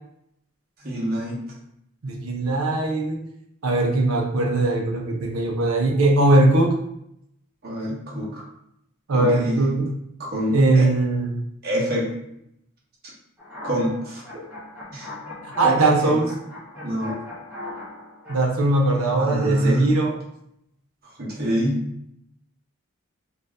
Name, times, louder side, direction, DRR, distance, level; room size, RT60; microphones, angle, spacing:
voice 1, 0.8-1.4 7.6-8.4 9.1-9.6 10.2-10.9 11.6-12.1 13.6-14.4 14.9-15.1 15.6-15.8 16.0-16.1 16.8-17.1 19.2-19.9 21.0-21.8, equal, 45° right, -5 dB, 1.0 m, -27 dB
voice 2, 2.0-3.2 3.6-6.7 9.1-9.9 10.5-11.4 15.4-16.3 18.3-20.2, right 2 dB, 75° right, 1 dB, 0.6 m, -20 dB
sound 1, 13.4-18.4, left 2 dB, 5° right, 0.8 m, -38 dB
2.7 x 2.4 x 3.3 m, 0.77 s
head